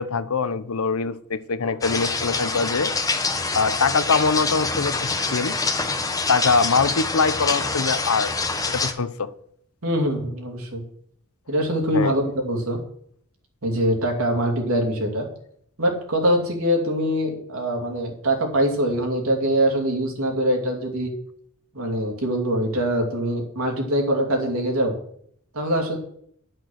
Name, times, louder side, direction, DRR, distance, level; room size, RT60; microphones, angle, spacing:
voice 1, 0.0-2.9 3.5-5.6 6.3-8.3 8.7-9.3 11.9-12.1, left 4 dB, 80° left, 14 dB, 0.7 m, -23 dB
sound 1, 1.8-8.9, left 3 dB, 15° left, 0.9 m, -25 dB
voice 2, 9.8-10.8 11.5-12.8 13.6-15.3 15.8-21.1 21.7-24.9 25.5-26.0, equal, 75° right, 2 dB, 2.7 m, -23 dB
11.0 x 6.2 x 6.3 m, 0.66 s
head